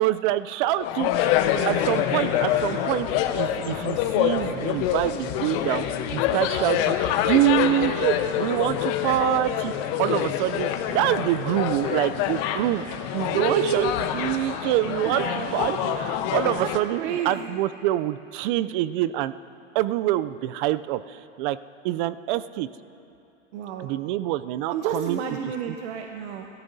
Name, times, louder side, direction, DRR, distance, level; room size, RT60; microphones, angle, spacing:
voice 1, 0.0-1.4 1.7-5.9 6.1-7.0 7.3-9.7 10.0-12.8 13.1-19.3 19.7-21.6 21.8-22.7 23.8-25.2 25.7-25.8, right 14 dB, 45° right, 15 dB, 0.4 m, -26 dB
sound 1, 0.8-16.8, left 10 dB, 50° left, 1.0 m, -26 dB
sound 2, 10.3-10.9, left 2 dB, 10° left, 3.8 m, -51 dB
voice 2, 13.3-13.9 15.1-15.5 15.9-16.0 16.6-16.7 17.0-17.5 23.5-23.9 24.7-26.5, right 7 dB, 65° right, 3 dB, 1.0 m, -29 dB
29.5 x 13.5 x 2.7 m, 2.8 s
supercardioid pair, 130°, 37 cm